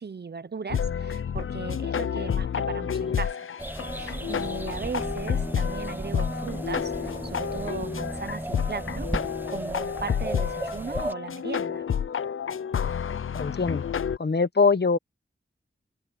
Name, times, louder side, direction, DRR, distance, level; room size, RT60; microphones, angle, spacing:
voice 1, 0.0-3.5 3.9-9.1 9.5-11.8, right 5 dB, 55° right, 0.8 m, -37 dB
sound 1, 0.7-14.2, left 7 dB, 90° left, 0.5 m, -30 dB
sound 2, 3.6-11.1, right 1 dB, 10° right, 0.8 m, -34 dB
voice 2, 13.3-13.8 14.2-15.0, left 4 dB, 55° left, 1.1 m, -22 dB
wide cardioid pair, 80°, 20 cm